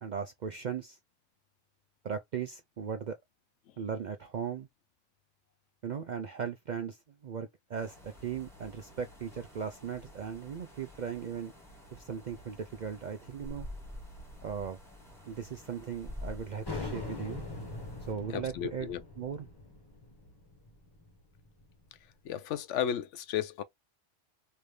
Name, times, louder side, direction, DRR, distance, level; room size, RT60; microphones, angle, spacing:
voice 1, 0.0-1.0 2.0-3.2 3.8-4.7 5.8-11.5 11.9-13.7 14.4-14.8 15.3-17.4 18.1-19.5, right 7 dB, 60° right, 0.4 m, -38 dB
sound 1, 7.7-18.1, left 1 dB, ahead, 1.2 m, -49 dB
sound 2, 16.6-22.0, left 3 dB, 20° left, 0.9 m, -42 dB
voice 2, 18.3-19.0 22.2-23.6, left 9 dB, 80° left, 0.9 m, -33 dB
3.3 x 2.6 x 3.2 m
omnidirectional pair, 1.2 m